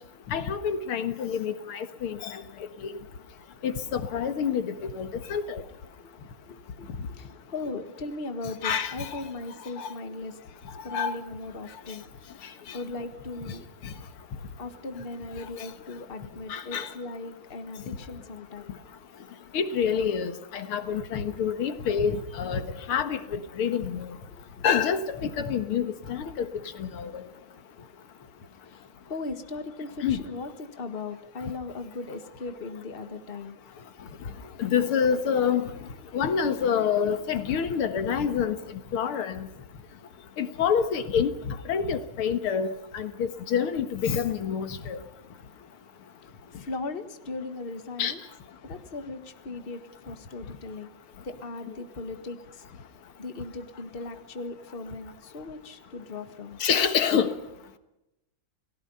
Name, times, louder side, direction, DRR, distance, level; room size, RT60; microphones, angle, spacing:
voice 1, 0.3-2.4 2.8-2.9 3.6-5.6 8.6-9.2 9.8-9.9 10.9-11.1 12.7-12.8 13.8-13.9 16.5-16.9 19.5-24.2 24.6-26.5 26.8-27.2 30.0-30.2 34.6-35.7 36.1-38.6 38.9-39.5 40.4-45.0 48.0-48.1 56.6-57.3, left 7 dB, 90° left, 10 dB, 2.4 m, -27 dB
voice 2, 6.5-10.4 10.8-12.5 12.7-13.7 14.6-18.8 24.3-24.4 28.7-33.6 46.5-48.2 48.6-50.9 51.2-52.8 53.2-56.6, left 3 dB, 30° left, 8 dB, 1.7 m, -38 dB
29.0 x 18.5 x 5.6 m, 0.89 s
omnidirectional pair, 2.3 m